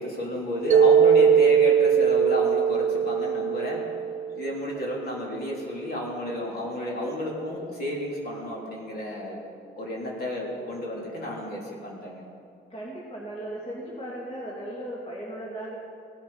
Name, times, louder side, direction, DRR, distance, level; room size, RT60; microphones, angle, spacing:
voice 1, 0.0-3.8 4.3-9.4 9.8-12.2, left 1 dB, 50° left, -3 dB, 3.3 m, -31 dB
Mallet percussion, 0.7-4.9, right 7 dB, 40° right, 0.4 m, -20 dB
voice 2, 12.7-15.8, right 1 dB, 30° left, -5 dB, 2.6 m, -36 dB
17.5 x 7.5 x 5.6 m, 2.6 s
cardioid pair, 90°, 20 cm